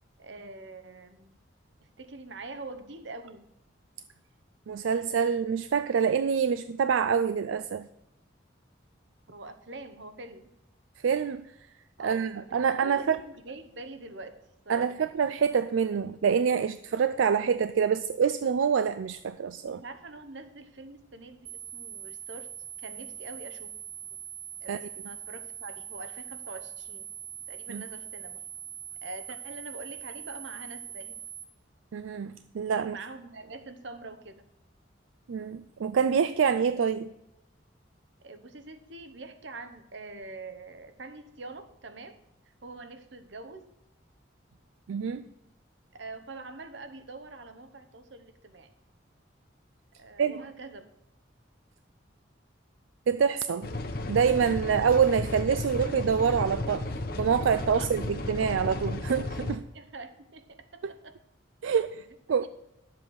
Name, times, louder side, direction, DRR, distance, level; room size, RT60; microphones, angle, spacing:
voice 1, 0.2-1.4 1.8-3.5 9.3-10.5 12.0-15.1 19.6-22.5 22.8-23.7 24.1-24.2 24.6-27.1 27.5-28.4 29.0-31.2 32.8-34.5 38.2-42.2 42.4-43.7 45.9-48.7 50.0-50.8 57.7-57.9 58.4-58.6 59.7-61.2 61.7-61.9 62.4-62.5, right 3 dB, 70° right, 1.0 m, -44 dB
voice 2, 4.7-7.9 11.0-11.4 12.0-13.2 14.7-19.8 24.7-24.8 27.7-27.8 31.9-33.0 35.3-37.1 44.9-45.2 50.2-50.4 53.1-53.7 54.1-56.9 57.2-59.6 60.8-60.9 61.6-62.5, right 6 dB, 85° right, 0.4 m, -26 dB
sound 1, 21.4-31.4, right 9 dB, 40° right, 1.3 m, -42 dB
sound 2, 53.6-59.5, left 2 dB, 50° left, 1.0 m, -34 dB
11.5 x 7.6 x 4.7 m
head